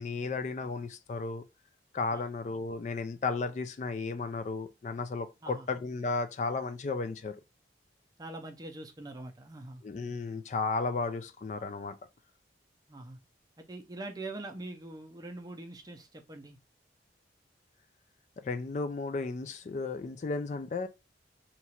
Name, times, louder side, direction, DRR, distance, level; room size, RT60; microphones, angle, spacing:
voice 1, 0.0-1.4 1.9-7.4 9.8-12.0 18.4-20.9, left 4 dB, 40° left, 0.3 m, -34 dB
voice 2, 8.2-9.8 12.9-13.2 13.6-16.6, right 2 dB, 20° right, 0.5 m, -43 dB
2.9 x 2.3 x 4.2 m
head